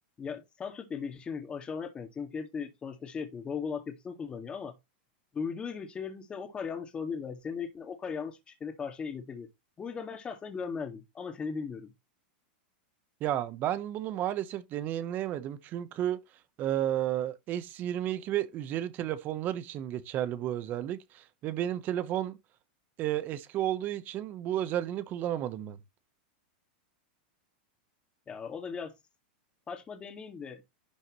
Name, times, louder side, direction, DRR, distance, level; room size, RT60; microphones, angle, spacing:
voice 1, 0.2-4.7 5.3-9.5 9.8-11.9 28.3-28.9 29.7-30.6, left 6 dB, 20° left, 2.1 m, -38 dB
voice 2, 13.2-16.2 16.6-22.4 23.0-25.8, right 12 dB, 35° right, 1.1 m, -32 dB
11.5 x 6.5 x 3.1 m
supercardioid pair, 135°, 5 cm